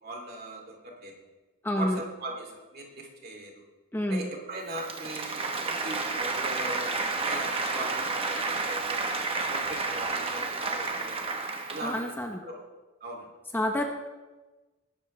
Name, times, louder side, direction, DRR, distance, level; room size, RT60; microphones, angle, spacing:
voice 1, 0.0-1.1 1.8-3.6 4.1-6.9 7.2-9.1 9.5-11.3 11.7-12.1 12.5-12.6 13.0-13.3, right 1 dB, 45° right, 1 dB, 2.6 m, -39 dB
voice 2, 1.6-2.0 3.9-4.3 11.8-12.4 13.5-13.8, left 1 dB, 10° left, 3 dB, 0.8 m, -28 dB
Applause, 4.7-12.1, right 3 dB, 25° right, 1.0 m, -31 dB
19.0 x 12.5 x 3.2 m, 1.2 s
head